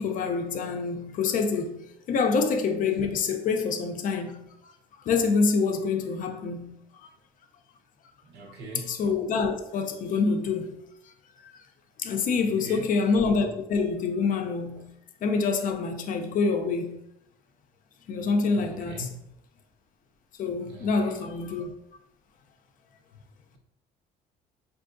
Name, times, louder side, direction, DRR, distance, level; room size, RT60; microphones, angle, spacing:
voice 1, 0.0-4.7 5.0-7.1 8.9-10.8 11.4-11.5 12.0-14.9 15.2-17.0 18.1-19.1 20.4-21.7, left 4 dB, 55° left, 0.5 m, -26 dB
voice 2, 8.3-8.9 12.6-12.9 18.6-19.2 20.7-21.2, right 1 dB, 80° right, 0.9 m, -41 dB
3.5 x 2.7 x 2.5 m
cardioid pair, 110°, 17 cm